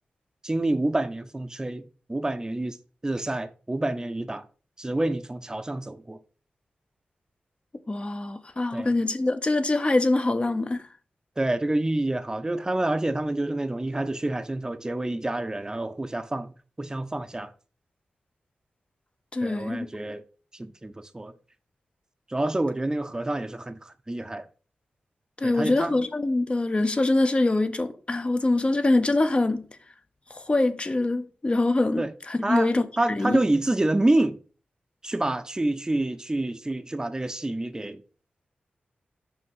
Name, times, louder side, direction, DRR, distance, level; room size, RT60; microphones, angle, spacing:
voice 1, 0.4-2.8 3.0-4.4 4.8-6.2 8.7-8.9 11.4-16.5 16.8-17.5 19.4-20.2 20.6-21.3 22.3-24.4 25.4-26.0 32.0-32.1 32.4-32.7 33.0-34.4 35.0-38.0, right 2 dB, 20° right, 0.6 m, -27 dB
voice 2, 7.9-10.9 19.3-19.9 25.4-29.6 30.3-33.4, left 2 dB, 30° left, 0.7 m, -24 dB
5.5 x 3.5 x 5.5 m
cardioid pair, 65°, 3 cm